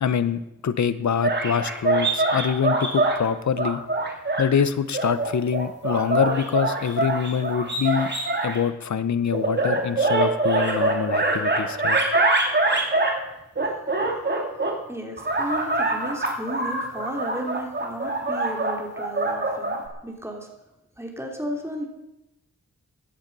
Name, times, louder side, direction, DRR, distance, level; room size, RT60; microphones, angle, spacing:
voice 1, 0.0-3.8 4.4-8.1 8.4-12.0, left 7 dB, 75° left, 13 dB, 0.9 m, -25 dB
sound 1, 1.2-3.2 3.6-4.5 4.9-8.6 9.3-13.2 13.5-14.7 15.2-19.9, right 2 dB, 35° right, 2.5 m, -24 dB
voice 2, 14.9-19.8 20.0-20.5 21.0-21.9, right 1 dB, 10° right, 1 dB, 3.1 m, -33 dB
16.0 x 10.5 x 5.4 m, 0.89 s
wide cardioid pair, 90°, 29 cm